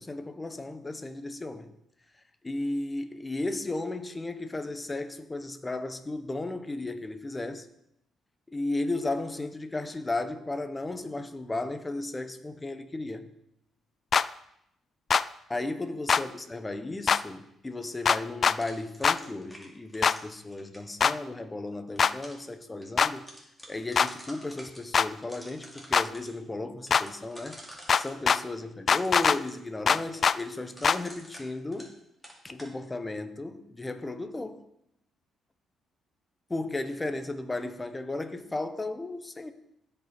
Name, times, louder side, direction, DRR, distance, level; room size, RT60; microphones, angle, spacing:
voice 1, 0.0-1.7 2.4-7.7 8.5-13.3 15.5-23.3 23.7-27.6 28.0-31.9 32.4-34.7 36.5-39.5, left 2 dB, 20° left, 1.0 m, -35 dB
sound 1, 14.1-14.3 15.1-15.2 16.1-16.2 17.1-17.2 18.1-18.6 19.0-19.2 20.0-20.2 21.0-21.1 22.0-22.1 23.0-23.1 24.0-24.1 24.9-25.1 25.9-26.1 26.9-27.0 27.9-28.4 28.9-29.4 29.9-30.4 30.8-31.0, left 6 dB, 45° left, 0.3 m, -22 dB
sound 2, 18.6-20.9 21.7-22.5 22.8-22.9 23.2-24.8 25.2-26.3 26.9-28.2 28.9-32.0 32.2-32.7, equal, ahead, 3.0 m, -48 dB
16.0 x 5.5 x 4.4 m
cardioid pair, 90°, 0 cm